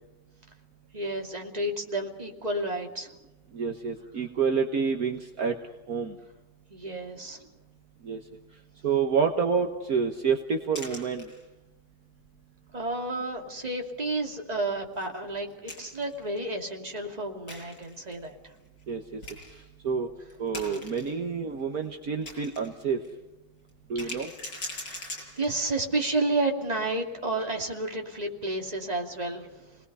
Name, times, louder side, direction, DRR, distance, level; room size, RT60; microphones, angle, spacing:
voice 1, 0.9-3.1 6.7-7.4 12.7-18.3 24.0-24.1 24.9-25.1 25.3-29.5, right 2 dB, 20° right, 1 dB, 2.8 m, -31 dB
voice 2, 3.5-5.6 5.9-6.2 8.0-8.2 8.8-11.3 18.9-19.2 19.5-20.1 20.4-23.0 23.9-24.3, right 6 dB, 55° right, 3 dB, 1.8 m, -28 dB
sound 1, 10.8-11.7 12.2-12.3 12.7-12.9 13.3-13.4 15.0-16.2 17.5-18.3 18.8-18.9 19.2-19.6 20.3-21.1 21.6-22.7 23.0-23.1 23.7-25.7, left 2 dB, 85° left, 7.6 m, -41 dB
30.0 x 20.0 x 5.6 m, 1.0 s
omnidirectional pair, 1.9 m